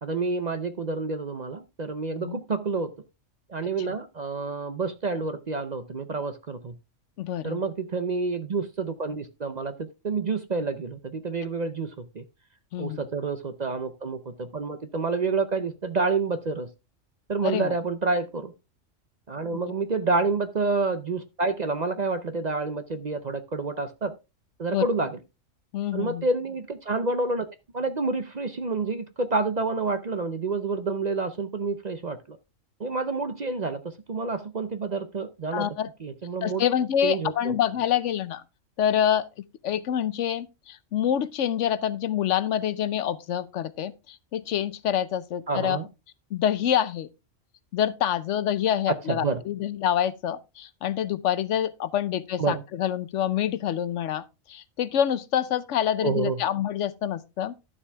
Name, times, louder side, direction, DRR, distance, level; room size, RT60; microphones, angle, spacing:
voice 1, 0.0-2.9 3.5-6.8 7.4-12.2 12.8-16.7 17.3-18.5 19.3-24.1 24.6-25.2 25.9-27.5 27.7-32.4 32.8-33.8 34.1-35.7 36.0-36.7 37.0-37.6 45.5-45.9 49.1-49.4 52.4-52.6 56.0-56.4, right 3 dB, 45° right, 0.7 m, -28 dB
voice 2, 7.2-7.6 12.7-13.1 17.4-17.7 19.5-19.6 24.7-24.9 25.7-26.3 35.5-35.9 36.4-38.4 38.8-45.8 46.3-47.1 47.7-57.5, left 10 dB, 70° left, 0.9 m, -27 dB
11.0 x 7.1 x 3.4 m
omnidirectional pair, 1.3 m